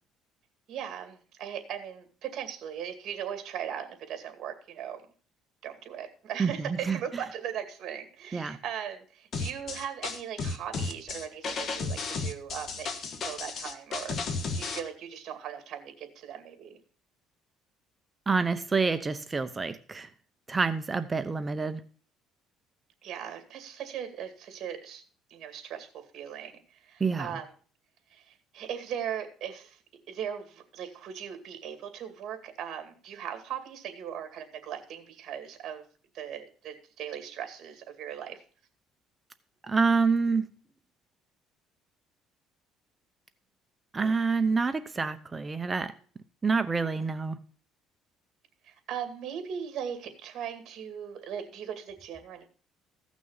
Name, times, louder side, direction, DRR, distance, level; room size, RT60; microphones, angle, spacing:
voice 1, 0.7-5.0 5.6-14.2 14.5-16.8 23.0-25.0 25.3-27.5 28.1-29.8 30.1-35.8 36.1-38.4 48.6-52.4, right 9 dB, 55° right, 7 dB, 2.3 m, -39 dB
voice 2, 6.4-7.0 8.3-8.6 18.3-20.1 20.5-21.8 27.0-27.3 39.6-40.5 43.9-45.9 46.4-47.4, right 4 dB, 20° right, 11 dB, 0.7 m, -27 dB
sound 1, 9.3-14.8, left 4 dB, 45° left, 1.4 m, -33 dB
15.5 x 6.2 x 5.6 m, 0.42 s
cardioid pair, 125°, 0 cm